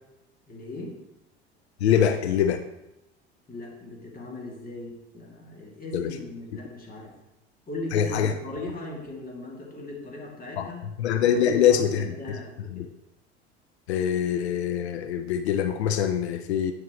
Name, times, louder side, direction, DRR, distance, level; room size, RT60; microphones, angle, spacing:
voice 1, 0.5-0.9 3.5-7.1 7.7-10.9 11.3-12.9, left 2 dB, 25° left, -2 dB, 2.5 m, -38 dB
voice 2, 1.8-2.6 5.9-6.1 7.9-8.3 10.6-10.7 11.0-12.1 12.7-12.9 13.9-16.7, left 9 dB, 90° left, 9 dB, 0.5 m, -23 dB
9.6 x 6.1 x 3.1 m, 0.92 s
hypercardioid pair, 80°, 32 cm